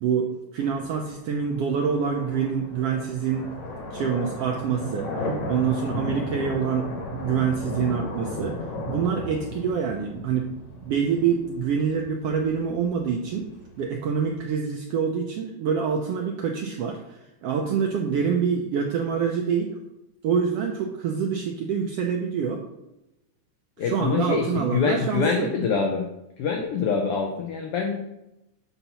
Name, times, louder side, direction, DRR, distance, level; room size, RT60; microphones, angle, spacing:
voice 1, 0.0-3.5 3.9-6.8 7.1-8.6 8.9-10.5 10.8-13.5 13.8-19.8 20.2-22.6 23.8-25.5, right 6 dB, 80° right, 1 dB, 1.3 m, -26 dB
sound 1, 0.6-14.5, left 1 dB, 65° left, 2.3 m, -35 dB
voice 2, 23.8-26.1 26.4-28.0, left 5 dB, 85° left, 3 dB, 1.2 m, -25 dB
8.1 x 2.9 x 5.5 m, 0.90 s
omnidirectional pair, 3.4 m